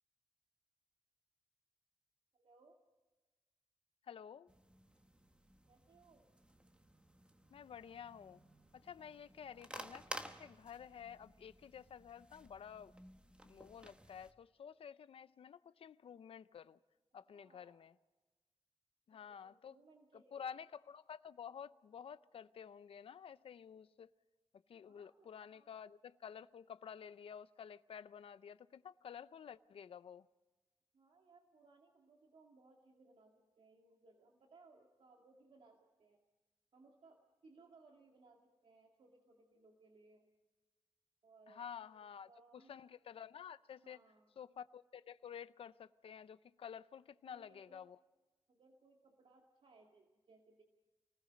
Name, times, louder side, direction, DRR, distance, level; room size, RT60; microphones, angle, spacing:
voice 1, 2.3-2.8 5.7-6.3 17.3-17.8 19.1-20.5 24.8-25.8 30.9-36.2 36.7-40.3 41.2-42.7 43.8-44.4 47.2-47.9 48.5-50.6, right 3 dB, 70° right, 2.1 m, -66 dB
voice 2, 4.1-4.5 7.5-8.4 8.7-12.9 13.4-16.8 17.1-17.9 19.1-19.8 20.3-24.1 24.7-30.3 41.5-44.0 44.4-48.0, left 8 dB, 85° left, 0.6 m, -51 dB
sound 1, 4.5-14.3, right 1 dB, 10° right, 1.2 m, -54 dB
29.0 x 19.5 x 5.2 m
wide cardioid pair, 135°, 9 cm